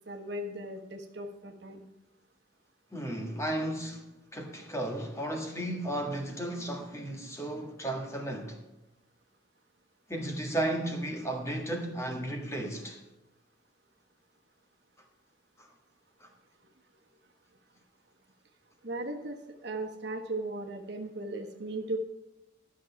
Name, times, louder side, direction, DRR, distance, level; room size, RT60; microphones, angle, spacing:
voice 1, 0.1-1.9 18.8-22.0, right 2 dB, 60° right, 1.3 m, -37 dB
voice 2, 2.9-8.6 10.1-13.0 15.6-15.7 16.2-16.3, right 1 dB, 15° left, 1.7 m, -34 dB
13.0 x 6.4 x 5.9 m
head